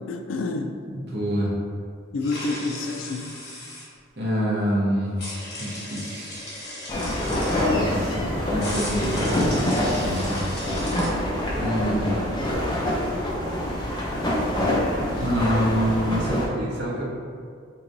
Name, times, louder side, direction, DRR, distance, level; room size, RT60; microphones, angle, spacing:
voice 1, 0.0-0.7 2.1-3.4 8.2-8.3, left 3 dB, 85° left, 5 dB, 0.4 m, -29 dB
voice 2, 0.9-1.5 4.2-5.2 5.6-6.5 7.7-10.4 11.5-12.2 15.1-17.0, equal, 60° right, -5 dB, 0.9 m, -26 dB
sound 1, 2.2-3.9 5.2-7.7 8.6-11.1, left 1 dB, 60° left, 1.1 m, -36 dB
sound 2, 6.9-16.5, left 1 dB, 20° left, 0.5 m, -25 dB
4.6 x 2.9 x 2.6 m, 2.1 s
head